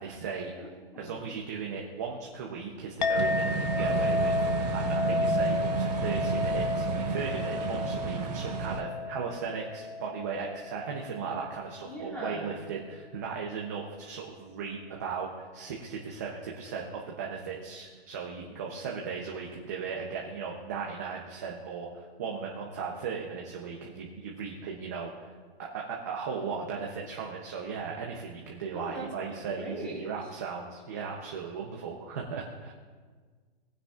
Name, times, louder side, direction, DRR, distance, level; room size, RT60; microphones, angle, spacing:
voice 1, 0.0-0.5 1.0-25.3 25.6-32.7, right 5 dB, 15° right, -1 dB, 0.6 m, -37 dB
voice 2, 0.6-1.3 11.9-12.6 28.7-30.1, right 1 dB, 5° left, -6 dB, 2.4 m, -40 dB
Chink clink, 3.0-11.7, left 3 dB, 45° left, 0.9 m, -32 dB
sound 1, 3.1-8.8, right 6 dB, 40° right, 1.3 m, -31 dB
20.5 x 9.9 x 2.4 m, 1.5 s
hypercardioid pair, 175°, 32 cm